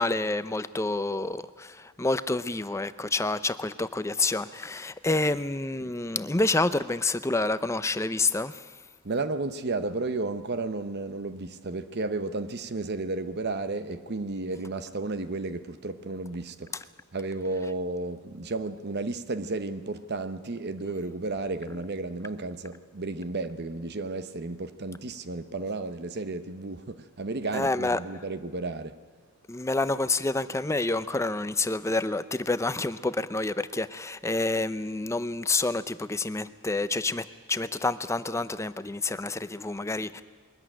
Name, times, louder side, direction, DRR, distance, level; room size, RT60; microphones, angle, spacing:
voice 1, 0.0-8.7 27.5-28.2 29.5-40.2, left 2 dB, 15° left, 0.5 m, -28 dB
voice 2, 9.0-16.9 17.1-29.0, right 3 dB, 50° right, 0.8 m, -33 dB
22.0 x 14.0 x 10.0 m
head